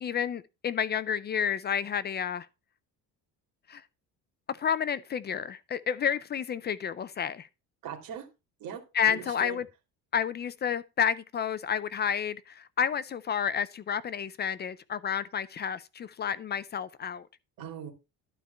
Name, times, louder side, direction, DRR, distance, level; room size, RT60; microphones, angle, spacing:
voice 1, 0.0-2.5 3.7-3.8 4.5-7.5 8.9-9.7 10.1-17.3, left 8 dB, 30° left, 0.4 m, -30 dB
voice 2, 7.8-8.3 8.6-9.6 17.6-17.9, right 8 dB, 65° right, 2.8 m, -40 dB
11.5 x 4.5 x 6.7 m
cardioid pair, 160°, 37 cm